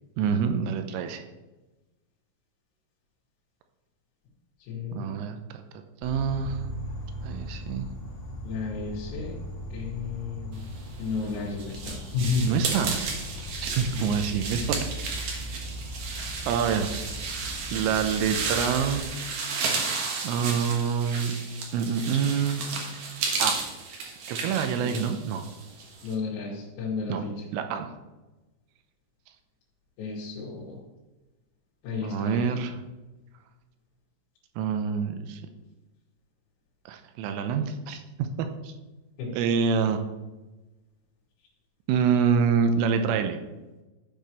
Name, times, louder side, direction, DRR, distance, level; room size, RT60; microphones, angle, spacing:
voice 1, 0.2-1.2 4.9-5.6 6.0-6.6 7.2-7.9 12.5-13.0 13.6-14.8 16.5-17.0 17.7-19.1 20.2-21.3 21.7-22.6 23.4-23.6 24.3-25.5 27.1-27.2 27.5-27.9 32.0-32.7 34.6-35.4 36.9-38.7 39.3-40.0 41.9-43.4, right 6 dB, 85° right, 7 dB, 3.3 m, -26 dB
voice 2, 4.6-5.2 8.4-9.4 9.7-10.6 11.0-12.5 13.9-14.3 24.8-25.1 26.0-27.4 30.0-30.8 31.8-32.6 39.2-39.3, left 4 dB, 90° left, -8 dB, 4.8 m, -32 dB
Insect, 6.0-19.0, equal, 65° left, 3.9 m, -39 dB
sound 1, 11.0-26.1, right 4 dB, 65° right, 2.1 m, -33 dB
13.5 x 7.9 x 3.1 m, 1.1 s
omnidirectional pair, 5.8 m